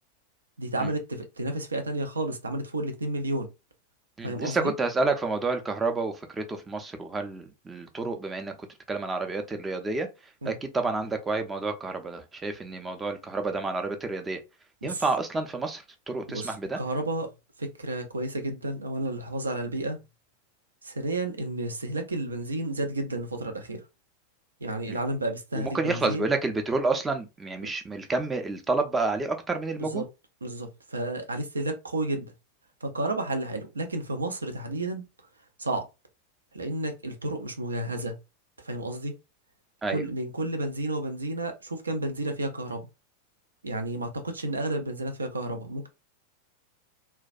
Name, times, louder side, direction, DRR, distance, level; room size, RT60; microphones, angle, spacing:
voice 1, 0.6-3.5 4.2-4.7 10.4-10.6 14.8-15.0 16.3-17.3 17.6-20.0 20.8-23.8 24.6-26.3 27.6-27.7 29.8-30.0 30.4-32.3 32.8-35.0 35.6-35.8 36.5-38.2 38.6-39.1 39.9-42.9 43.6-45.9, right 2 dB, 75° right, 0.5 m, -31 dB
voice 2, 4.2-8.5 8.9-10.1 10.4-14.4 14.8-16.8 24.9-25.0 25.5-30.0 39.8-40.0, right 3 dB, 15° right, 0.4 m, -29 dB
2.2 x 2.2 x 2.5 m
figure-of-eight pair, 90°, 0 cm